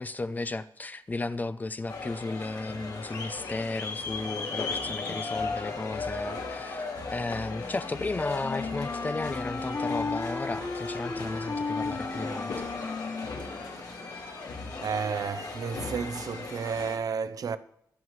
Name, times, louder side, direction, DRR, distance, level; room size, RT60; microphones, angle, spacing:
voice 1, 0.0-12.5, left 3 dB, 25° left, 0.5 m, -34 dB
sound 1, 1.9-17.0, left 4 dB, 70° left, 3.3 m, -37 dB
Wind instrument woodwind instrument, 7.5-14.3, left 3 dB, 50° left, 2.6 m, -35 dB
voice 2, 13.8-14.1 14.8-17.6, right 6 dB, 55° right, 0.7 m, -32 dB
23.0 x 9.2 x 3.2 m
wide cardioid pair, 155°, 7 cm